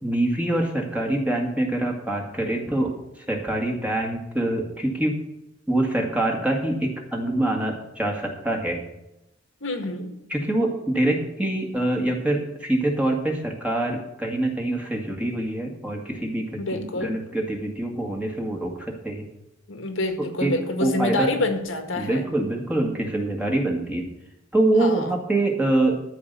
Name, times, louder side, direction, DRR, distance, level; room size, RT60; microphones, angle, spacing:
voice 1, 0.0-2.9 3.3-5.1 5.7-8.8 10.3-19.2 20.2-20.5 20.8-21.3 22.0-24.1 24.5-26.0, right 1 dB, 5° right, 1 dB, 1.8 m, -25 dB
voice 2, 9.6-10.1 16.6-17.1 19.7-22.3 24.8-25.2, left 2 dB, 75° left, 6 dB, 1.8 m, -27 dB
13.5 x 5.0 x 8.1 m, 0.91 s
head